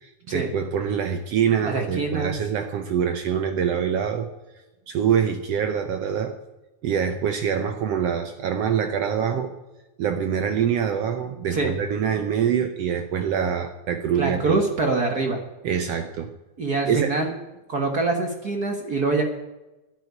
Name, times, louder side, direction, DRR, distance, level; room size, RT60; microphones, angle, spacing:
voice 1, 0.0-4.3 4.9-6.4 6.8-9.5 10.0-14.6 15.6-16.3 16.9-17.1, right 8 dB, 70° right, 7 dB, 1.7 m, -25 dB
voice 2, 1.6-2.3 11.5-11.7 14.1-15.4 16.6-17.3 17.7-19.2, right 3 dB, 45° right, 3 dB, 1.4 m, -24 dB
11.5 x 9.1 x 9.6 m, 1.0 s
omnidirectional pair, 3.5 m